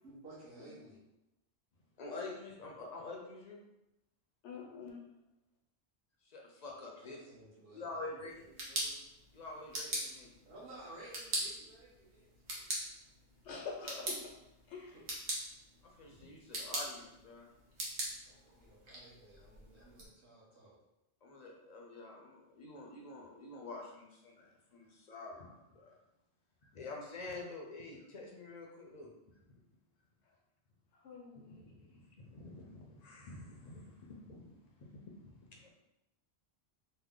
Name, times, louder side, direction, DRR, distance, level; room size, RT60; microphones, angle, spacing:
voice 1, 0.0-1.0 6.8-8.5 10.4-12.7 14.9-15.1 18.2-20.8, right 2 dB, 65° right, -8 dB, 1.2 m, -55 dB
voice 2, 2.0-3.6 6.2-7.2 7.7-9.0 9.3-10.4 13.8-14.0 15.8-17.5 19.8-19.9 21.2-26.0 26.6-29.1 29.5-29.6 31.3-34.5 34.8-35.7, left 2 dB, 50° left, -1 dB, 0.5 m, -48 dB
voice 3, 4.4-5.0 13.4-14.2 14.7-14.9 30.3-30.4 30.9-31.6, left 5 dB, 85° left, -1 dB, 1.0 m, -46 dB
sound 1, 8.3-20.1, right 1 dB, 85° right, 1.1 m, -43 dB
3.2 x 2.1 x 3.6 m, 0.90 s
omnidirectional pair, 1.1 m